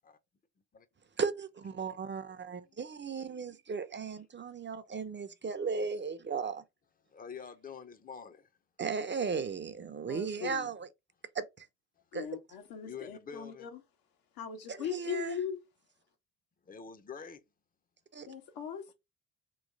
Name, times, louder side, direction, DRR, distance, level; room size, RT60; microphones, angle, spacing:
voice 1, 1.2-6.6 8.8-10.9 11.3-11.7 12.1-12.3 14.7-15.4 18.1-18.3, right 5 dB, 30° right, 0.7 m, -36 dB
voice 2, 1.7-2.1 2.6-2.8 7.1-8.5 12.8-13.7 16.6-17.4, left 6 dB, 25° left, 0.7 m, -47 dB
voice 3, 10.1-10.7 12.1-13.8 14.4-15.6 18.2-18.9, left 8 dB, 70° left, 1.3 m, -39 dB
3.1 x 3.1 x 3.9 m
hypercardioid pair, 55°, 37 cm